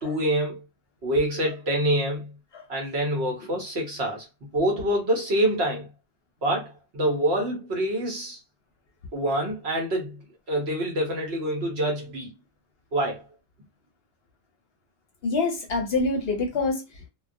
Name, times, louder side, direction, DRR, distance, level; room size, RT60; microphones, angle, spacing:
voice 1, 0.0-0.6 1.0-2.3 2.7-5.9 6.4-8.4 9.1-10.2 10.5-12.3 12.9-13.2, right 1 dB, 60° right, 1.0 m, -26 dB
voice 2, 15.2-17.1, left 3 dB, 60° left, 0.7 m, -26 dB
2.2 x 2.2 x 2.5 m
omnidirectional pair, 1.3 m